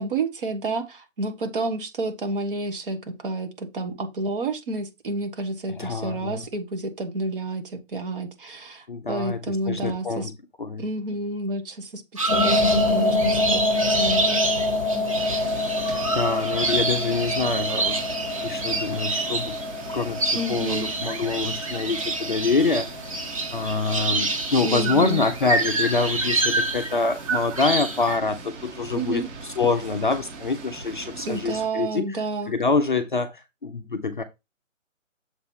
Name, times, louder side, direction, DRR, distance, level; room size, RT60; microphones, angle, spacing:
voice 1, 0.0-10.3 10.8-14.4 14.9-15.1 20.3-20.9 24.6-25.3 28.9-29.3 31.2-32.5, right 2 dB, 40° right, 1.3 m, -30 dB
voice 2, 5.7-6.5 8.9-10.3 10.6-10.8 16.0-18.0 18.4-19.6 19.9-23.0 23.5-29.2 29.6-32.2 32.5-34.2, left 4 dB, 40° left, 0.5 m, -25 dB
sound 1, 12.2-28.2, right 3 dB, 25° right, 0.7 m, -28 dB
sound 2, 12.3-24.1, left 2 dB, 5° right, 1.1 m, -27 dB
sound 3, 15.2-31.7, right 3 dB, 60° right, 2.6 m, -40 dB
7.1 x 2.9 x 5.3 m
hypercardioid pair, 160°, 39 cm